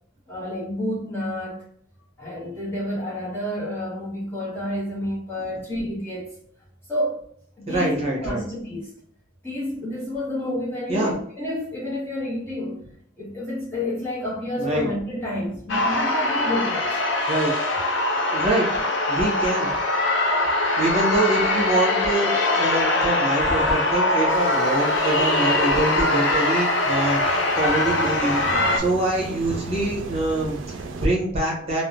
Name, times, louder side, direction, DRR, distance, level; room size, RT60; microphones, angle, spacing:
voice 1, 0.3-1.6 2.2-6.3 6.9-7.2 7.6-8.9 9.4-12.8 13.2-17.0, left 1 dB, 10° left, -7 dB, 0.8 m, -29 dB
voice 2, 7.7-8.4 10.9-11.1 14.6-14.9 17.3-17.5 18.3-18.7 19.1-19.7 20.8-31.8, right 2 dB, 30° right, -4 dB, 0.9 m, -25 dB
sound 1, 15.7-28.8, left 2 dB, 60° left, 0.5 m, -22 dB
sound 2, 24.3-31.1, right 3 dB, 70° right, 0.4 m, -37 dB
3.2 x 2.0 x 2.6 m, 0.66 s
head